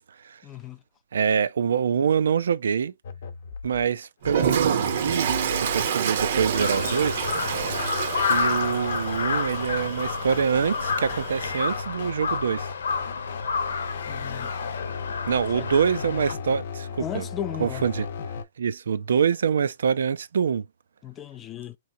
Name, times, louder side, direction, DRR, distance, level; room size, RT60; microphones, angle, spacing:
voice 1, 0.4-0.8 14.1-14.5 15.5-15.7 17.0-17.9 21.0-21.8, left 10 dB, 15° left, 0.3 m, -35 dB
voice 2, 1.1-2.9 3.6-5.3 5.6-7.2 8.2-12.7 15.3-17.2 17.6-18.1 18.6-20.6, right 7 dB, 85° right, 0.5 m, -25 dB
sound 1, 3.0-18.4, left 5 dB, 50° left, 0.7 m, -37 dB
Toilet flush, 4.2-11.7, right 8 dB, 45° right, 0.6 m, -28 dB
Crow, 6.5-16.3, left 5 dB, 90° left, 0.9 m, -30 dB
4.6 x 3.0 x 2.6 m
hypercardioid pair, 175°, 0 cm